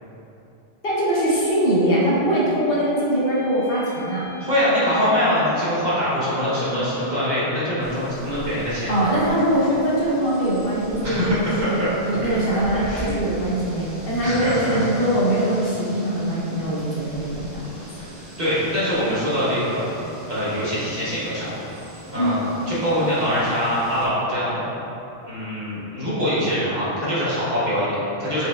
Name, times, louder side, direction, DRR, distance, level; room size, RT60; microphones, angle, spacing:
voice 1, 0.8-4.3 8.9-17.6 22.1-22.5, right 1 dB, 60° left, -7 dB, 0.9 m, -22 dB
sound 1, 2.0-6.3, left 4 dB, 25° left, 0.5 m, -42 dB
voice 2, 4.4-9.1 11.0-11.4 11.8-11.9 12.7-13.1 14.2-14.8 18.4-19.8 20.3-21.5 22.1-24.7 25.2-28.5, equal, 45° right, -10 dB, 0.9 m, -23 dB
sound 2, 7.8-24.1, equal, 70° right, 1.4 m, -40 dB
4.6 x 3.1 x 2.2 m, 2.9 s
omnidirectional pair, 1.2 m